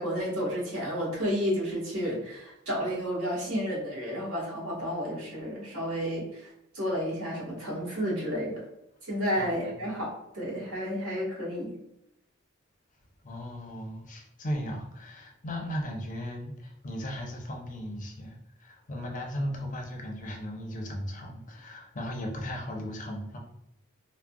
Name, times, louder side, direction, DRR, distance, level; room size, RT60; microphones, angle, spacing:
voice 1, 0.0-8.6 9.0-11.8, equal, 80° right, -5 dB, 1.4 m, -31 dB
voice 2, 9.4-9.7 13.2-23.4, equal, 40° left, 1 dB, 0.5 m, -36 dB
3.5 x 2.0 x 2.2 m, 0.83 s
head